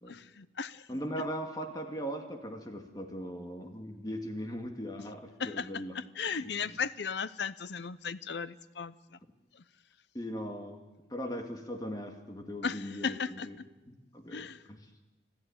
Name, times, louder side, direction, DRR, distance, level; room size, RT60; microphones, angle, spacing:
voice 1, 0.1-0.9 5.4-5.7 5.9-8.9 12.6-13.5 14.3-14.6, left 6 dB, 70° left, 16 dB, 0.7 m, -36 dB
voice 2, 0.9-5.9 6.4-6.8 10.1-10.8 11.1-13.6 13.9-14.9, equal, 20° left, 4 dB, 2.2 m, -39 dB
26.0 x 14.0 x 8.7 m, 1.1 s
head